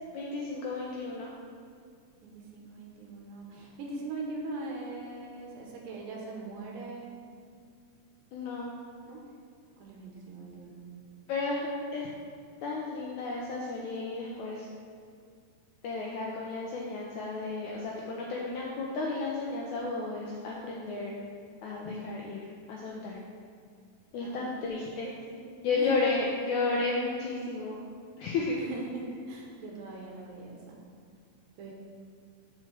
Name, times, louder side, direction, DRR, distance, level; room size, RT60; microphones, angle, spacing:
voice 1, 0.1-1.3 8.3-8.7 11.3-12.1 12.6-14.7 15.8-21.1 21.6-23.2 24.1-25.1 25.6-27.8 28.2-28.6, left 3 dB, 80° left, -3 dB, 1.7 m, -33 dB
voice 2, 2.2-7.1 9.1-9.2 9.8-10.8 24.2-24.7 25.0-25.9 28.6-30.8 31.6-31.7, right 3 dB, 80° right, -1 dB, 2.7 m, -41 dB
6.0 x 4.5 x 6.1 m, 2.2 s
omnidirectional pair, 4.1 m